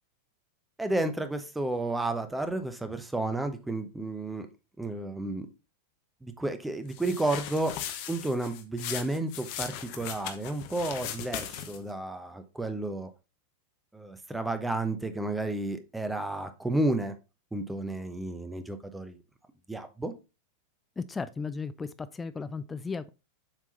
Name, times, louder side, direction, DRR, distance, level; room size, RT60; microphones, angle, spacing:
voice 1, 0.8-4.5 4.8-5.5 6.2-7.8 8.1-13.1 13.9-17.2 17.5-19.2 19.7-20.1, right 2 dB, 5° right, 0.9 m, -32 dB
sound 1, 6.9-11.9, left 10 dB, 45° left, 0.9 m, -38 dB
voice 2, 21.0-23.1, left 4 dB, 15° left, 0.4 m, -35 dB
7.3 x 3.7 x 3.9 m
figure-of-eight pair, 90°, 0 cm